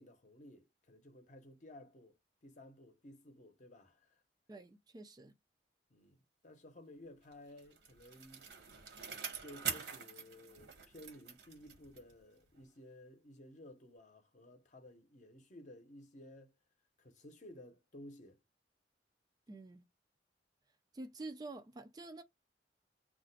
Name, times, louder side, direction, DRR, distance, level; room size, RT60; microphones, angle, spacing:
voice 1, 0.0-2.2 2.4-4.2 5.9-8.5 9.4-16.5 17.0-18.4, left 1 dB, 45° left, 0.7 m, -56 dB
voice 2, 4.5-5.3 19.5-19.8 20.9-22.2, right 2 dB, 20° right, 0.3 m, -48 dB
Bicycle, 7.3-12.2 12.6-12.7, right 6 dB, 75° right, 1.0 m, -45 dB
2.4 x 2.1 x 3.9 m
head